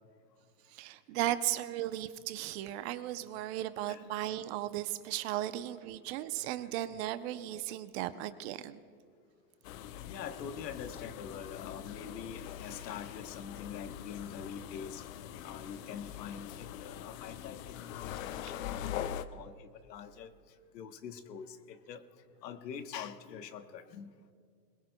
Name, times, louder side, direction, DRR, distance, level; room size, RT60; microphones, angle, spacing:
voice 1, 0.7-8.8, right 14 dB, 40° right, 13 dB, 0.6 m, -36 dB
sound 1, 9.6-19.3, left 10 dB, 55° left, 0.7 m, -43 dB
voice 2, 10.0-18.9 19.3-20.3 20.7-22.0 22.4-24.1, left 7 dB, 85° left, 10 dB, 1.1 m, -45 dB
21.5 x 20.5 x 2.2 m, 2.2 s
hypercardioid pair, 120°, 49 cm